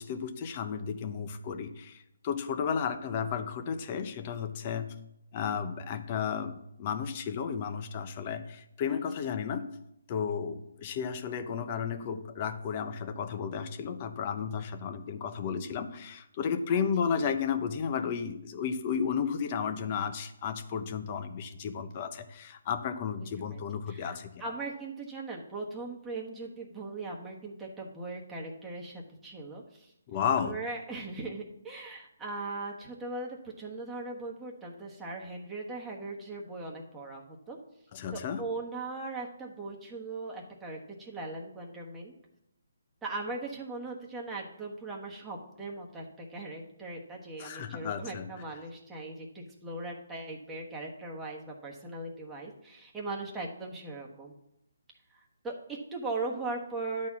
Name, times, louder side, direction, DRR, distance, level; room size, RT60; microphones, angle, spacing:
voice 1, 0.0-4.9 5.3-9.7 10.1-24.3 30.1-30.6 37.9-38.4 47.4-48.3, left 7 dB, 30° left, 9 dB, 0.8 m, -33 dB
voice 2, 23.1-23.6 23.9-29.9 30.4-37.6 38.1-42.1 43.0-54.3 55.1-57.1, right 3 dB, 10° right, -2 dB, 1.3 m, -39 dB
10.5 x 4.3 x 7.2 m, 0.80 s
hypercardioid pair, 160°, 0 cm